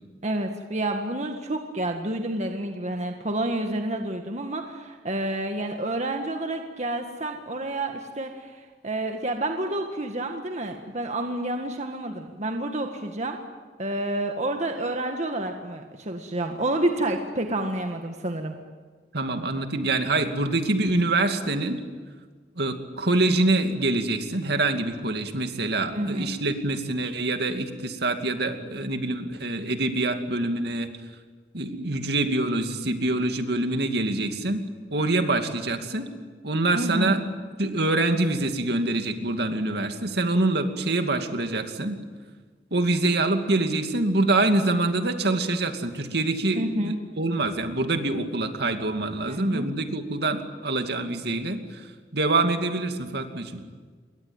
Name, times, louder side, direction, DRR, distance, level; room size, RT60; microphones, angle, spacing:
voice 1, 0.2-13.4 13.8-18.5 25.9-26.3 36.7-37.1 46.6-47.0 49.3-49.7, right 1 dB, 40° right, 4 dB, 1.7 m, -29 dB
voice 2, 19.1-21.8 22.6-30.9 31.5-34.6 34.9-36.1 36.4-37.2 37.6-42.0 42.7-51.9 52.1-53.6, right 2 dB, 65° right, 6 dB, 2.5 m, -25 dB
28.0 x 22.5 x 9.0 m, 1.5 s
head